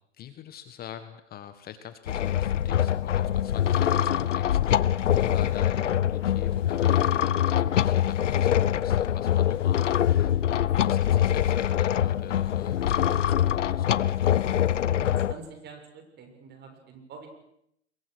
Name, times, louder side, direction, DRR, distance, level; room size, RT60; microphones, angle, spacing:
voice 1, 0.2-14.7, left 10 dB, 25° left, 11 dB, 1.6 m, -44 dB
sound 1, 2.1-15.3, left 10 dB, 85° left, 1.0 m, -24 dB
voice 2, 14.8-17.3, right 4 dB, 30° right, 5 dB, 6.7 m, -46 dB
27.5 x 23.0 x 6.5 m, 0.75 s
hypercardioid pair, 125°, 35 cm